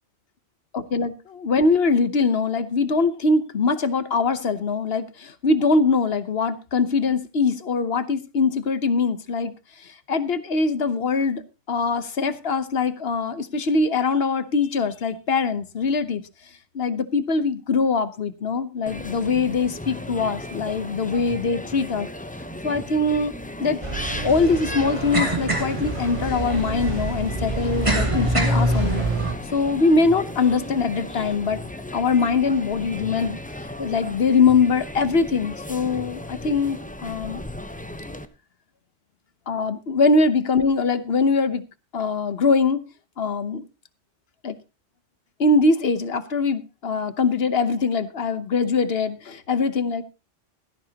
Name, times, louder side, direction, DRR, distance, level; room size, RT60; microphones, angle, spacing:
voice 1, 0.7-9.5 9.8-11.4 11.7-16.2 16.7-22.1 22.6-23.3 23.6-23.8 24.2-29.0 29.5-31.6 31.9-33.4 33.8-37.5 39.5-41.6 41.9-42.8 43.2-43.6 44.4-44.6 45.4-50.0, left 4 dB, 60° left, 1.2 m, -22 dB
sound 1, 18.9-38.2, left 1 dB, 10° left, 0.7 m, -36 dB
sound 2, 23.8-29.3, right 2 dB, 25° right, 2.5 m, -25 dB
17.0 x 13.5 x 2.9 m
omnidirectional pair, 1.2 m